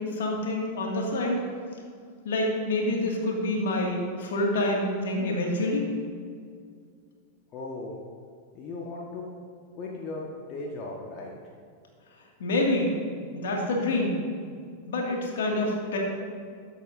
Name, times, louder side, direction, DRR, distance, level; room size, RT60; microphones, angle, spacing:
voice 1, 0.0-1.4 2.2-6.0 12.4-13.0 13.3-14.2 14.9-16.0, left 1 dB, 60° left, 0 dB, 2.2 m, -27 dB
voice 2, 7.5-8.0 8.5-9.3 9.7-11.3, left 2 dB, 35° left, -2 dB, 1.4 m, -37 dB
20.5 x 8.4 x 2.7 m, 2.2 s
figure-of-eight pair, 90°, 0 cm